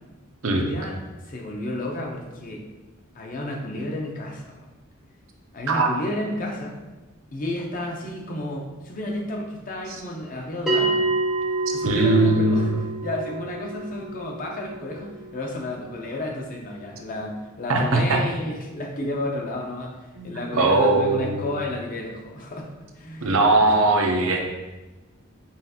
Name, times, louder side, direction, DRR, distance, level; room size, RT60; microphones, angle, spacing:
voice 1, 0.5-1.0 1.2-2.6 3.2-4.6 5.5-6.8 7.3-11.0 11.7-12.7 13.0-20.0 20.2-22.7 23.0-23.4 23.8-23.9, left 1 dB, 40° left, 1 dB, 0.6 m, -31 dB
voice 2, 5.7-6.0 11.8-12.8 17.7-18.2 20.2-21.4 23.2-24.5, right 2 dB, 80° right, 2 dB, 0.6 m, -20 dB
Bell, 10.7-15.7, right 2 dB, 5° right, 0.6 m, -28 dB
5.5 x 2.4 x 2.7 m, 1.1 s
head